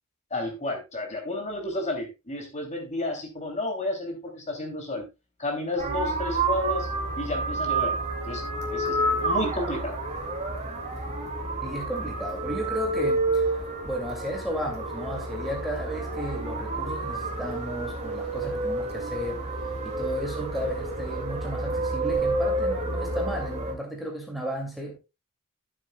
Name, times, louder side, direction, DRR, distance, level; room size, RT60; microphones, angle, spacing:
voice 1, 0.3-5.1 5.4-6.9 7.2-8.0 8.2-8.4 8.7-10.0, left 2 dB, 30° left, 3.0 m, -31 dB
sound 1, 5.8-23.7, right 2 dB, 30° right, 2.4 m, -29 dB
voice 2, 11.6-13.6 13.8-19.5 19.8-25.0, equal, ahead, 2.5 m, -34 dB
14.5 x 7.7 x 2.3 m
head